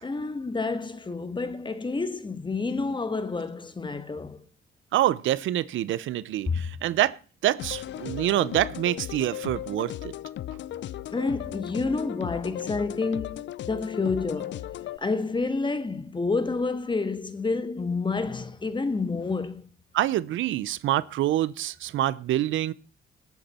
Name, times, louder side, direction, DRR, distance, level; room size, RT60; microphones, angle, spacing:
voice 1, 0.0-4.4 6.5-6.6 11.1-14.7 15.0-19.6, left 3 dB, 25° left, 1.5 m, -29 dB
voice 2, 4.9-7.2 7.4-10.1 19.9-22.7, right 13 dB, 80° right, 0.8 m, -26 dB
sound 1, 7.6-15.0, left 12 dB, 65° left, 0.6 m, -36 dB
19.0 x 8.2 x 4.3 m
cardioid pair, 90°, 20 cm